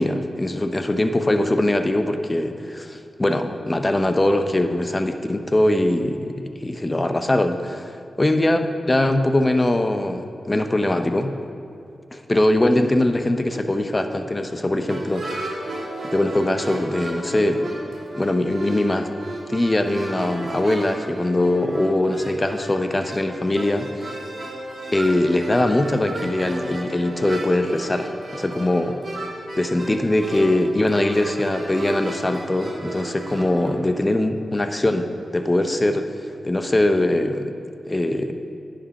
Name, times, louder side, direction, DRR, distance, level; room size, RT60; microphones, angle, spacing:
voice 1, 0.0-7.9 8.2-8.6 8.9-11.3 12.1-15.6 16.1-17.7 18.2-19.1 19.5-24.2 24.9-29.0 29.6-36.1 36.4-37.5 37.9-38.4, left 1 dB, 30° left, 7 dB, 0.7 m, -22 dB
sound 1, 14.9-33.8, right 2 dB, 60° right, 1.9 m, -34 dB
9.9 x 5.1 x 5.7 m, 2.5 s
cardioid pair, 45°, 0 cm